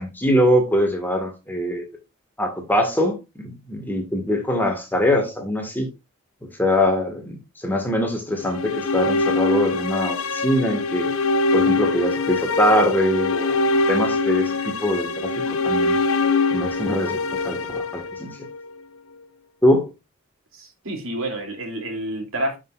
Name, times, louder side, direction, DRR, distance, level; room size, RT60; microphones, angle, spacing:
voice 1, 0.0-1.8 2.4-5.9 6.4-7.4 7.6-11.1 11.5-13.6 13.9-16.0 16.5-18.4 19.6-19.9, equal, 10° left, 2.0 m, -23 dB
sound 1, 8.4-18.6, left 3 dB, 75° left, 0.8 m, -23 dB
voice 2, 20.5-22.6, right 1 dB, 70° right, 3.2 m, -29 dB
11.0 x 6.1 x 2.6 m
head